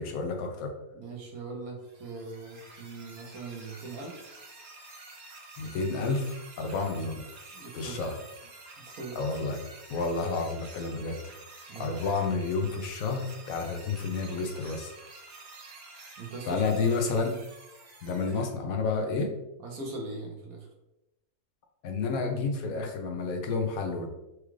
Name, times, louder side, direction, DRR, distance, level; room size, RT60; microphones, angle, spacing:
voice 1, 0.0-0.7 5.6-7.2 7.7-8.1 9.2-9.6 9.9-11.2 11.8-14.9 16.4-17.3 18.0-19.3 21.8-24.1, left 4 dB, 70° left, 4 dB, 1.0 m, -30 dB
voice 2, 0.9-4.2 7.5-8.1 8.8-9.2 11.7-11.9 16.2-16.9 19.6-20.7, right 3 dB, 70° right, 0 dB, 1.4 m, -40 dB
sound 1, 1.8-18.5, right 3 dB, 50° right, 1.0 m, -49 dB
4.7 x 2.4 x 3.1 m, 0.91 s
omnidirectional pair, 1.6 m